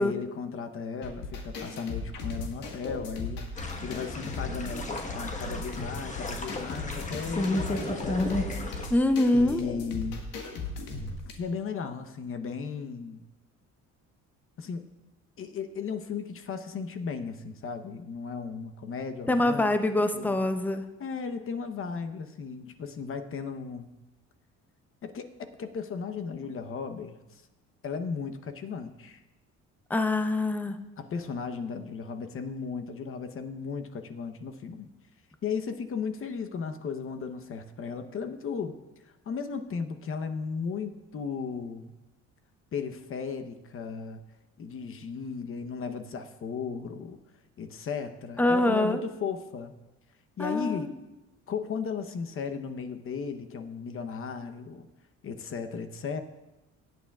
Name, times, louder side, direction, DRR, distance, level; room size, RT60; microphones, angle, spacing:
voice 1, 0.0-3.5 3.8-8.3 9.3-10.2 11.3-13.2 14.6-14.9 15.4-19.7 20.1-20.4 21.0-23.9 25.0-25.3 25.6-27.4 27.8-29.2 31.0-34.9 35.4-38.8 39.0-42.0 42.7-44.2 44.6-47.2 47.6-49.7 50.4-50.9 51.5-54.9 55.2-56.2, left 5 dB, 45° left, 7 dB, 0.9 m, -35 dB
sound 1, 1.0-11.3, left 3 dB, 90° left, 1.7 m, -37 dB
sound 2, 3.6-8.9, left 2 dB, 25° left, 1.3 m, -33 dB
voice 2, 8.9-9.6 19.3-20.9 29.9-30.8 48.4-49.0 50.4-51.0, left 1 dB, 5° left, 8 dB, 0.6 m, -25 dB
17.5 x 9.0 x 2.4 m, 1.0 s
cardioid pair, 110°, 30 cm